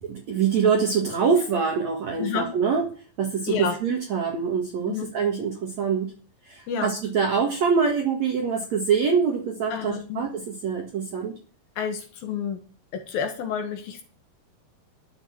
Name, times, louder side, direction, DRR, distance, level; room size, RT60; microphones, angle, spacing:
voice 1, 0.0-2.8 3.2-6.1 6.5-11.4, right 6 dB, 55° right, 1 dB, 2.5 m, -24 dB
voice 2, 2.2-2.5 3.5-3.8 4.9-5.1 6.7-6.9 9.7-10.3 11.8-12.6 12.9-14.0, left 7 dB, 65° left, 6 dB, 3.3 m, -29 dB
12.5 x 6.7 x 7.3 m, 0.38 s
omnidirectional pair, 4.7 m